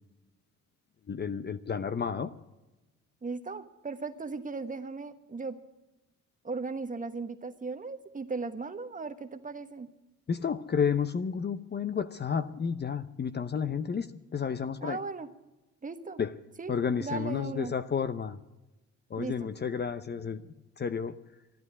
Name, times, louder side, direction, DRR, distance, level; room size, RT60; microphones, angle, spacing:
voice 1, 1.1-2.3 10.3-14.1 14.3-15.0 16.2-16.3 16.7-18.4 19.1-21.1, left 6 dB, 35° left, 11 dB, 0.7 m, -31 dB
voice 2, 3.2-5.6 6.4-9.9 14.8-15.3 15.8-16.2 16.6-17.7 19.2-19.5, right 4 dB, 25° right, 9 dB, 1.2 m, -37 dB
12.5 x 12.0 x 9.6 m, 1.0 s
cardioid pair, 90°, 30 cm